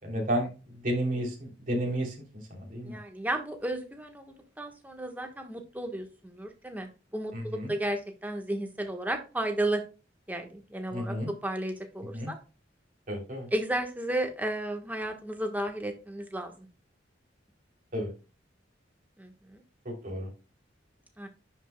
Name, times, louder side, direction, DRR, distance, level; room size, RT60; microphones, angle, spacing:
voice 1, 0.0-2.1 2.5-3.0 7.3-7.7 10.9-11.3 12.1-12.3 13.1-13.5 17.9-18.1 19.8-20.3, equal, 45° right, 0 dB, 3.0 m, -32 dB
voice 2, 2.8-9.8 10.3-11.1 11.4-12.4 13.5-16.5 19.2-19.6 21.2-21.3, right 1 dB, 10° right, 5 dB, 1.2 m, -33 dB
10.5 x 5.3 x 2.2 m, 0.32 s
head